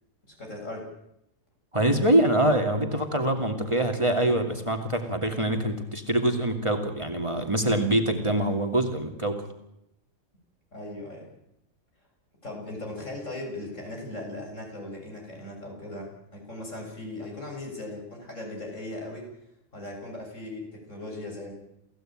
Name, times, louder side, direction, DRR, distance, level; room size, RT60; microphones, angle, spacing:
voice 1, 0.2-0.9 10.7-11.3 12.4-19.3 19.7-21.5, left 2 dB, 70° left, 0 dB, 8.0 m, -38 dB
voice 2, 1.7-9.5, right 1 dB, 25° right, 5 dB, 2.5 m, -24 dB
29.0 x 16.0 x 9.1 m, 0.82 s
omnidirectional pair, 1.4 m